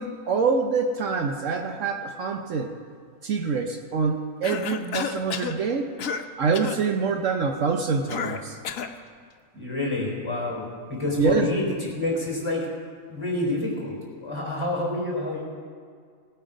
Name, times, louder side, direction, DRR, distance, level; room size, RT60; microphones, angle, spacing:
voice 1, 0.0-2.7 3.2-5.9 6.4-8.6 11.2-11.5, right 5 dB, 65° right, 4 dB, 1.1 m, -25 dB
Cough, 4.4-5.6 6.0-6.3 6.5-6.8 8.1-9.0, left 7 dB, 75° left, 1.1 m, -31 dB
voice 2, 9.5-12.7 13.1-15.4, left 2 dB, 20° left, -3 dB, 3.8 m, -28 dB
18.5 x 9.1 x 5.0 m, 2.1 s
omnidirectional pair, 1.5 m